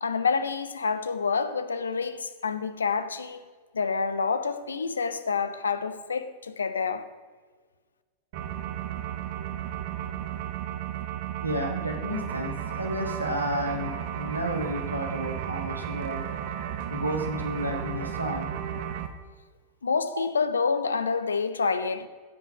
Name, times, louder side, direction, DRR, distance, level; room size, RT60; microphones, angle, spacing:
voice 1, 0.0-3.4 3.7-7.1 19.8-22.1, left 5 dB, 75° left, 0.7 m, -28 dB
sound 1, 8.3-19.1, right 10 dB, 50° right, 1.0 m, -34 dB
voice 2, 11.4-16.2 16.9-18.5 20.1-20.2, equal, 85° right, 1.5 m, -31 dB
15.5 x 5.7 x 6.0 m
figure-of-eight pair, 90°, 0 cm